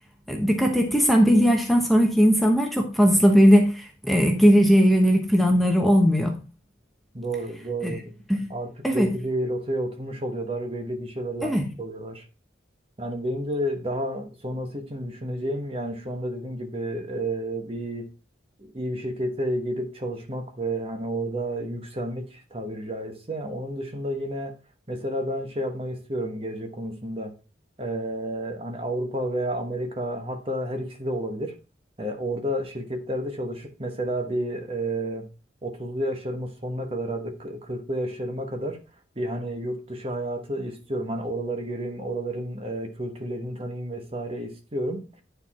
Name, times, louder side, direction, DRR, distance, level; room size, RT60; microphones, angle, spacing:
voice 1, 0.3-6.3 7.8-8.0 8.3-8.5 8.8-9.1 11.4-11.7, equal, ahead, 0.9 m, -19 dB
voice 2, 7.1-8.1 8.5-12.3 13.0-18.1 18.6-24.6 24.9-27.3 27.8-31.5 32.0-35.3 35.6-38.8 39.2-45.1, right 1 dB, 30° right, 1.1 m, -31 dB
9.6 x 4.6 x 4.2 m
head